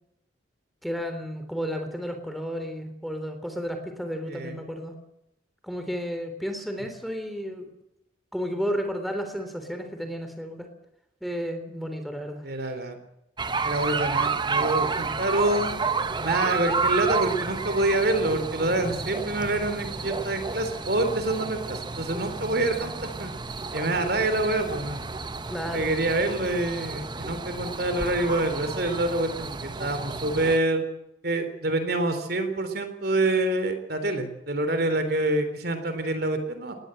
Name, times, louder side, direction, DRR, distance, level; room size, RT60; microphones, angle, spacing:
voice 1, 0.8-4.9 5.6-7.7 8.3-10.7 11.2-12.4 25.5-25.9, equal, ahead, 5 dB, 3.4 m, -32 dB
voice 2, 12.4-13.0 13.6-15.8 16.2-23.3 23.7-25.0 25.7-30.8 31.2-36.7, right 2 dB, 50° right, 9 dB, 3.5 m, -26 dB
sound 1, 13.4-30.6, right 4 dB, 25° right, 0.9 m, -31 dB
20.5 x 18.0 x 7.8 m, 0.84 s
head